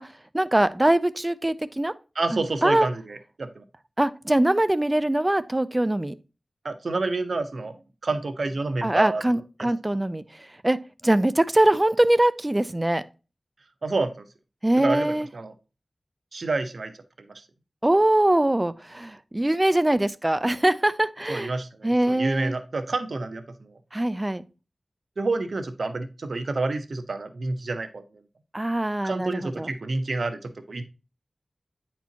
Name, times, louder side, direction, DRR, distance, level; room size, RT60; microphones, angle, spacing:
voice 1, 0.3-1.9 2.3-2.9 4.0-6.2 8.8-10.2 10.6-13.0 14.6-15.3 17.8-21.5 21.8-22.6 23.9-24.4 28.5-29.7, right 1 dB, 20° right, 0.5 m, -22 dB
voice 2, 2.2-3.6 6.6-7.8 8.0-9.7 13.8-14.3 14.8-15.5 16.3-16.9 17.2-17.4 21.3-23.8 25.2-28.0 29.0-30.8, right 3 dB, 80° right, 0.8 m, -29 dB
9.3 x 4.4 x 2.8 m
wide cardioid pair, 60°, 0 cm